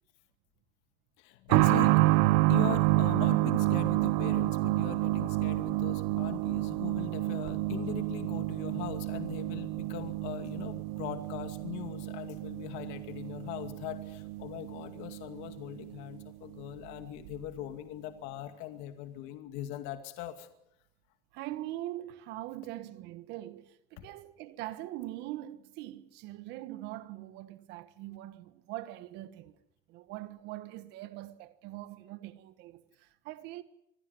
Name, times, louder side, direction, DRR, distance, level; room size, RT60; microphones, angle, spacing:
voice 1, 1.2-2.0 2.5-20.5, left 13 dB, 80° left, 2.3 m, -41 dB
sound 1, 1.5-15.9 16.2-16.3 17.3-17.4, right 18 dB, 90° right, 0.9 m, -29 dB
voice 2, 21.3-29.6 29.9-33.6, right 15 dB, 70° right, 1.4 m, -42 dB
25.5 x 16.0 x 9.3 m
cardioid pair, 130°, 18 cm